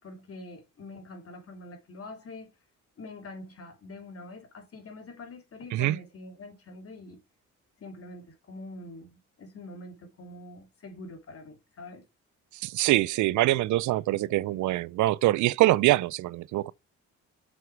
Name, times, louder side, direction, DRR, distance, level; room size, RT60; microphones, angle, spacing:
voice 1, 0.0-2.5 3.0-7.2 7.8-12.0, left 2 dB, 50° left, 2.9 m, -45 dB
voice 2, 12.5-16.7, right 16 dB, 75° right, 0.5 m, -24 dB
7.2 x 6.4 x 4.6 m
cardioid pair, 90°, 30 cm